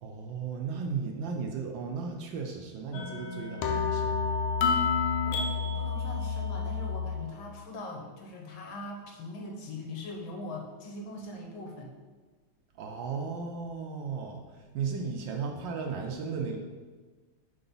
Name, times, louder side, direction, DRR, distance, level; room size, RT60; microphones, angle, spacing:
voice 1, 0.0-4.3 12.8-14.4 14.7-16.6, right 5 dB, 70° right, 2 dB, 1.2 m, -35 dB
sound 1, 2.9-7.3, left 5 dB, 85° left, 1.6 m, -29 dB
voice 2, 5.2-11.9, left 2 dB, 70° left, 0 dB, 1.7 m, -41 dB
4.7 x 3.9 x 5.2 m, 1.4 s
omnidirectional pair, 2.3 m